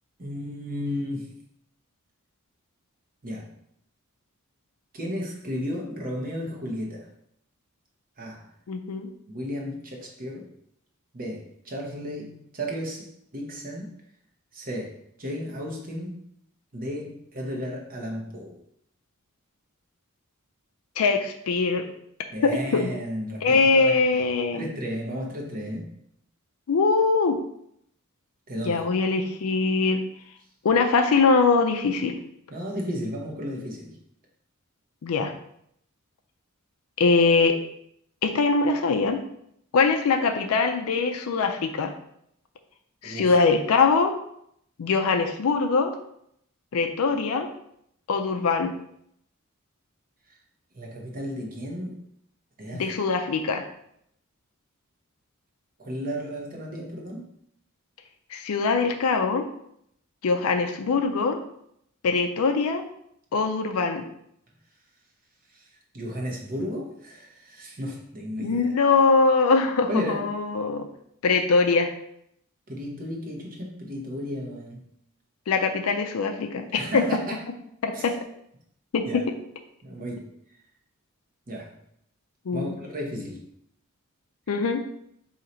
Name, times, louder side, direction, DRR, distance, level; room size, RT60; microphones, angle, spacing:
voice 1, 0.2-1.4 3.2-3.5 4.9-7.1 8.2-8.4 9.3-10.5 11.1-13.1 13.3-13.9 14.5-16.2 16.7-18.6 22.3-24.0 24.5-25.9 28.5-28.8 32.5-34.0 43.0-43.4 50.3-50.4 50.7-52.0 52.6-52.8 55.8-57.3 65.5-65.6 65.9-68.7 69.9-70.3 72.7-74.8 76.8-77.4 77.9-78.1 79.0-79.2 79.8-80.3 81.5-81.7 82.5-83.4, equal, 45° right, 0 dB, 0.9 m, -33 dB
voice 2, 8.7-9.1 21.0-21.9 22.4-22.9 23.4-24.7 26.7-27.4 28.6-30.0 30.6-32.2 35.0-35.3 37.0-37.6 38.2-39.2 39.7-41.9 43.0-44.1 44.8-45.9 46.7-47.5 48.1-48.7 52.7-53.7 58.3-59.5 60.2-61.4 62.0-62.8 63.3-64.0 68.4-70.9 71.2-71.9 75.5-77.0 77.8-78.1 78.9-79.1 82.5-82.7 84.5-84.8, left 4 dB, 80° left, 5 dB, 0.4 m, -22 dB
3.9 x 2.8 x 4.3 m, 0.73 s
head